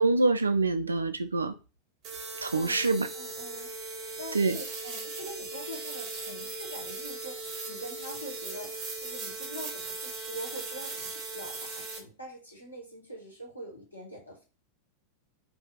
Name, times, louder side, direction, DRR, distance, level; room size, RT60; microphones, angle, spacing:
voice 1, 0.0-1.5 2.4-3.1 4.3-4.6, right 3 dB, 75° right, 0.4 m, -25 dB
sound 1, 2.0-12.0, right 3 dB, 35° right, 0.7 m, -38 dB
voice 2, 2.5-3.7 4.2-14.4, equal, 85° left, 1.2 m, -44 dB
2.7 x 2.3 x 3.7 m
figure-of-eight pair, 90°, 0 cm